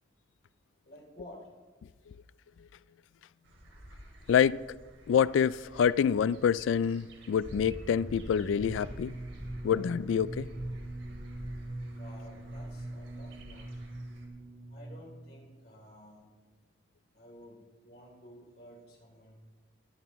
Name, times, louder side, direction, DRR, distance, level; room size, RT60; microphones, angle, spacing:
voice 1, 0.8-1.5 11.9-13.8 14.7-16.3 17.1-19.3, left 1 dB, 50° left, 3.4 m, -52 dB
sound 1, 3.4-14.3, equal, 80° right, 2.8 m, -49 dB
voice 2, 4.3-4.6 5.1-9.1 9.6-10.5, left 7 dB, 80° left, 0.3 m, -26 dB
sound 2, 7.7-15.4, right 1 dB, 20° right, 1.8 m, -42 dB
21.0 x 10.5 x 3.1 m
head